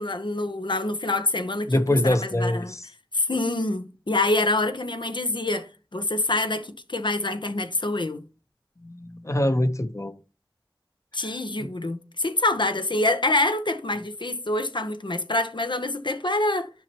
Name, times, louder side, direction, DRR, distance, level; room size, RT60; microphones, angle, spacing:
voice 1, 0.0-2.7 3.1-8.2 11.1-16.7, left 2 dB, 70° left, 0.8 m, -26 dB
voice 2, 1.7-2.9 8.8-10.1 11.2-11.7, left 1 dB, 35° left, 0.9 m, -25 dB
10.5 x 5.5 x 3.0 m
wide cardioid pair, 40°, 8 cm